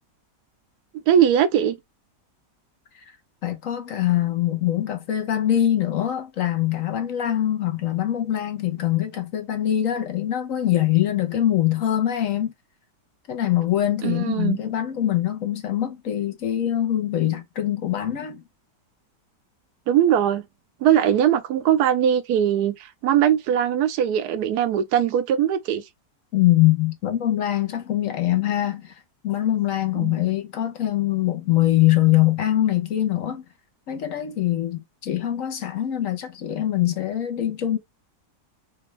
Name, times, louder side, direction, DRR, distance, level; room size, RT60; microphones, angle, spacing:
voice 1, 1.1-1.7 14.0-14.6 19.9-20.4 20.8-25.8 30.0-30.2, right 10 dB, 80° right, 1.1 m, -20 dB
voice 2, 3.4-12.5 13.3-18.4 26.3-28.9 29.2-33.4 33.9-37.8, left 13 dB, 60° left, 1.1 m, -23 dB
4.4 x 2.5 x 3.1 m
omnidirectional pair, 1.7 m